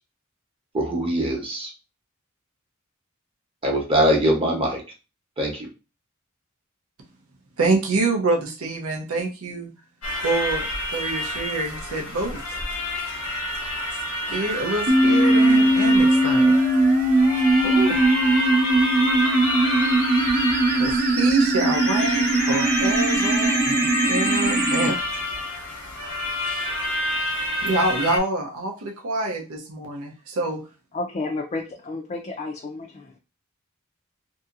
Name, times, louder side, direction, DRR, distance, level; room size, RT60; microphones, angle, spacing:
voice 1, 0.7-1.7 3.6-4.8 5.4-5.7, right 1 dB, 25° right, 0 dB, 0.8 m, -22 dB
voice 2, 7.6-9.7 10.2-10.7 10.9-12.4 14.3-16.5 17.6-18.0 20.8-25.0 26.5-26.6 27.6-30.6, right 2 dB, 90° right, 2 dB, 0.6 m, -26 dB
sound 1, 10.0-28.2, left 1 dB, 80° left, 0.9 m, -28 dB
sound 2, 14.9-24.9, right 1 dB, 50° right, 0.8 m, -20 dB
voice 3, 30.9-33.2, left 3 dB, 30° left, 1 dB, 0.4 m, -31 dB
2.7 x 2.7 x 2.4 m, 0.30 s
head